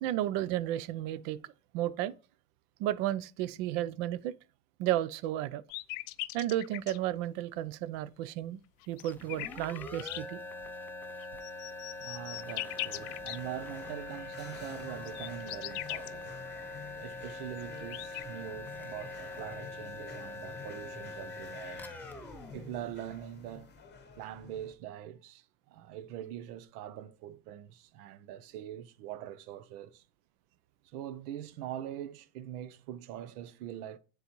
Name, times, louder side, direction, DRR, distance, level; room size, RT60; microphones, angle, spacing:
voice 1, 0.0-2.1 2.8-4.3 4.8-5.6 6.3-8.6 8.9-10.4, right 13 dB, 55° right, 0.6 m, -33 dB
sound 1, 5.7-7.0 8.8-10.2 11.2-13.4 14.8-16.1 17.3-17.4 17.6-18.2, left 20 dB, 60° left, 0.5 m, -39 dB
sound 2, 8.9-23.5, left 2 dB, 5° left, 0.5 m, -44 dB
voice 2, 12.0-16.3 17.0-21.9 22.5-23.7 24.2-30.0 30.8-34.0, right 11 dB, 75° right, 0.9 m, -43 dB
sound 3, 12.9-24.7, left 6 dB, 20° left, 1.0 m, -51 dB
9.6 x 4.0 x 3.1 m
supercardioid pair, 135°, 46 cm